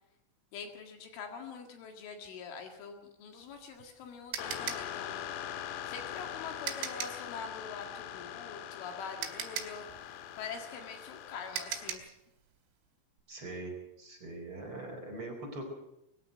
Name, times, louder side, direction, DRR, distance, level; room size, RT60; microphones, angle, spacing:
voice 1, 0.5-12.1, left 5 dB, 70° left, 4 dB, 4.3 m, -45 dB
sound 1, 3.4-7.3 8.7-8.8 9.2-12.2, right 9 dB, 75° right, 4.7 m, -39 dB
sound 2, 4.4-12.0, left 10 dB, 90° left, 4.1 m, -42 dB
voice 2, 13.3-15.6, right 2 dB, 25° right, 1 dB, 5.0 m, -42 dB
21.5 x 15.5 x 7.9 m, 0.83 s
omnidirectional pair, 5.9 m